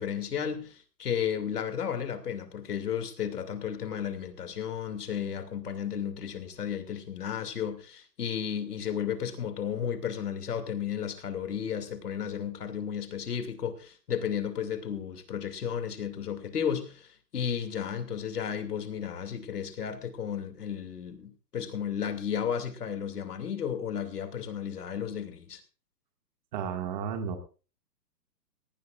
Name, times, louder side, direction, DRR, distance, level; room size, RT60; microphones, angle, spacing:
voice 1, 0.0-25.6, left 8 dB, 65° left, 2.7 m, -33 dB
voice 2, 26.5-27.4, right 7 dB, 25° right, 2.0 m, -32 dB
18.0 x 18.0 x 2.5 m
hypercardioid pair, 165°, 50 cm